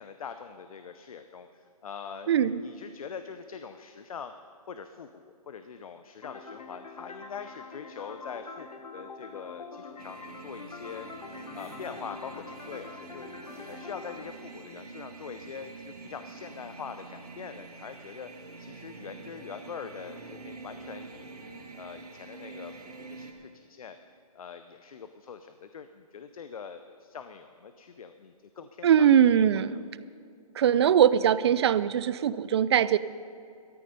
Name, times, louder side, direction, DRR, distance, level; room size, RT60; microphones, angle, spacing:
voice 1, 0.0-4.3 4.7-11.1 11.5-13.3 13.7-21.3 21.7-24.0 24.3-29.8, left 6 dB, 65° left, 9 dB, 0.8 m, -43 dB
voice 2, 2.3-2.6 28.8-29.8 30.5-33.0, right 9 dB, 45° right, 16 dB, 0.5 m, -21 dB
sound 1, 6.2-14.2, left 4 dB, 90° left, 1.4 m, -45 dB
sound 2, 10.0-23.3, right 3 dB, 85° right, 2.1 m, -46 dB
sound 3, 10.3-14.2 14.6-14.7 15.0-15.1, right 2 dB, 20° right, 2.4 m, -53 dB
14.0 x 13.5 x 5.4 m, 2.4 s
hypercardioid pair, 150°, 20 cm